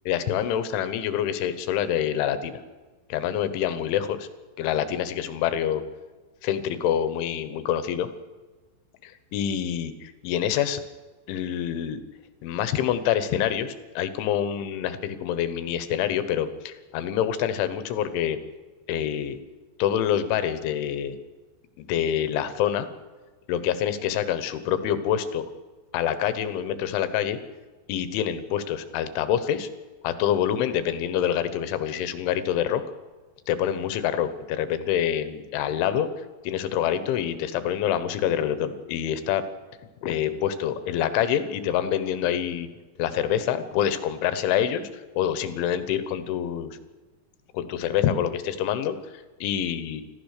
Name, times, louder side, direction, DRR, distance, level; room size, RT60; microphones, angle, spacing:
voice 1, 0.1-2.6 3.1-4.3 4.6-5.8 6.4-8.1 9.0-10.8 11.3-12.0 12.4-18.4 18.9-19.4 19.8-21.2 21.8-22.9 23.5-25.4 25.9-27.4 27.9-29.7 30.0-32.8 33.5-36.1 36.4-39.4 40.0-42.7 43.0-44.9 45.2-46.8 47.5-50.0, left 10 dB, 85° left, 11 dB, 3.7 m, -26 dB
26.0 x 15.0 x 6.7 m, 1.3 s
omnidirectional pair, 5.3 m